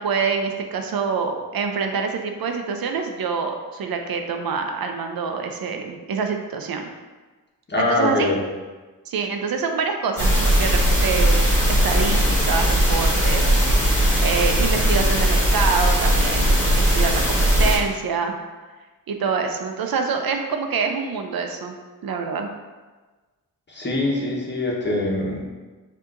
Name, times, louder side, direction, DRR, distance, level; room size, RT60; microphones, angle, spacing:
voice 1, 0.0-6.9 7.8-8.3 9.1-14.0 14.2-18.4 19.1-21.8 22.0-22.5, right 5 dB, 85° right, 4 dB, 0.6 m, -26 dB
voice 2, 7.7-8.4 23.7-25.4, left 2 dB, 30° left, -3 dB, 1.1 m, -23 dB
sound 1, 10.2-17.8, equal, 5° left, 1.4 m, -19 dB
7.3 x 2.8 x 2.5 m, 1.3 s
wide cardioid pair, 90°, 35 cm